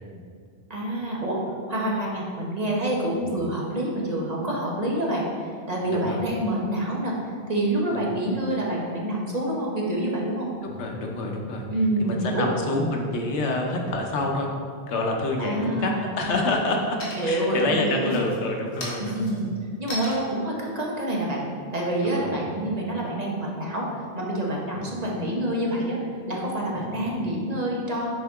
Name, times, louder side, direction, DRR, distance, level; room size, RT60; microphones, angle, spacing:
voice 1, 0.7-1.4 1.7-7.2 7.5-10.5 11.7-12.5 15.4-16.0 17.2-18.2 19.0-19.5 19.8-21.4 21.7-23.9 24.1-26.0 26.3-28.1, right 1 dB, 40° right, -3 dB, 1.0 m, -27 dB
voice 2, 5.9-6.2 7.9-8.1 10.6-11.6 12.0-14.5 14.9-19.3 22.0-22.3 22.6-22.7 24.7-24.9 26.7-27.0, left 2 dB, 85° left, 1 dB, 1.1 m, -28 dB
sound 1, 17.0-17.6 18.0-22.4, left 1 dB, 55° left, 1.4 m, -38 dB
6.5 x 4.5 x 3.5 m, 2.1 s
omnidirectional pair, 1.1 m